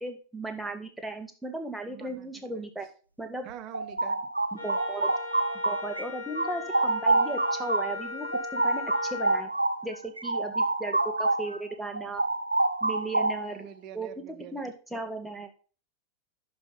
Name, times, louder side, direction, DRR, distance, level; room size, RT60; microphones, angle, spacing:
voice 1, 0.0-2.9 3.2-3.5 4.5-5.2 5.7-8.3 8.5-9.5 9.8-12.2 12.8-13.7 13.9-15.5, right 2 dB, 5° right, 4 dB, 1.8 m, -36 dB
voice 2, 1.9-2.7 3.4-4.2 13.4-14.7, right 9 dB, 45° right, 9 dB, 1.1 m, -46 dB
sound 1, 3.5-6.0 6.3-11.6 11.9-13.6, right 2 dB, 90° right, 0.5 m, -27 dB
Wind instrument woodwind instrument, 4.6-9.4, left 7 dB, 80° left, 2.5 m, -39 dB
11.0 x 5.2 x 4.0 m, 0.38 s
figure-of-eight pair, 85°, 0 cm